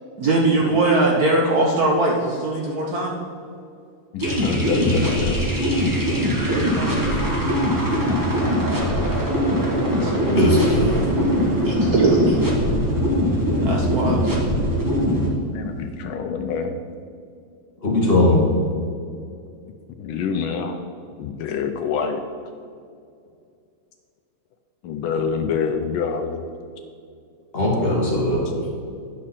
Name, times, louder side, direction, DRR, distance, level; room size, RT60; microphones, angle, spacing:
voice 1, 0.2-3.1 6.5-7.4 7.9-8.1 9.9-10.4 11.6-12.4 13.6-14.3, right 2 dB, 60° right, -1 dB, 1.0 m, -21 dB
voice 2, 4.1-5.4 11.6-11.8 15.5-16.8 19.6-20.8 21.2-22.2 24.8-26.5, left 6 dB, 75° left, 6 dB, 1.2 m, -27 dB
sound 1, 4.2-15.3, equal, 15° right, 0.7 m, -21 dB
voice 3, 10.2-11.0 17.8-18.4 27.5-28.5, left 1 dB, 30° left, -3 dB, 1.7 m, -19 dB
10.0 x 6.3 x 4.2 m, 2.4 s
omnidirectional pair, 2.4 m